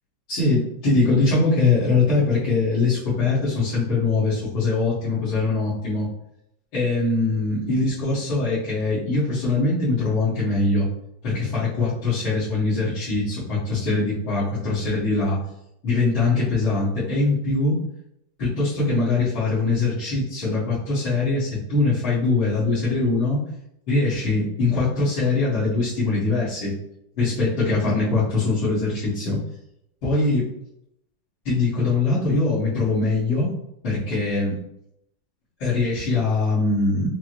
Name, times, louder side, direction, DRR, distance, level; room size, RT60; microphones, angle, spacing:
voice 1, 0.3-6.1 6.7-10.9 11.2-15.4 15.8-17.8 18.4-23.4 23.9-26.7 27.2-29.4 30.0-30.4 31.4-33.5 33.8-34.6 35.6-37.1, left 3 dB, 85° left, -15 dB, 2.5 m, -22 dB
5.8 x 2.2 x 3.0 m, 0.78 s
omnidirectional pair, 2.1 m